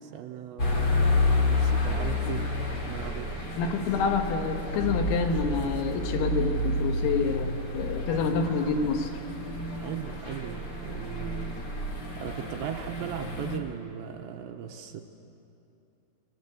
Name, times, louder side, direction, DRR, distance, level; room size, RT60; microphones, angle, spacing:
voice 1, 0.0-3.3 9.7-11.6 12.2-15.0, right 9 dB, 75° right, 4 dB, 2.9 m, -38 dB
sound 1, 0.6-13.6, left 2 dB, 35° left, 1.7 m, -30 dB
voice 2, 3.6-9.1, left 5 dB, 85° left, 5 dB, 4.2 m, -28 dB
28.5 x 21.0 x 8.2 m, 2.8 s
omnidirectional pair, 5.9 m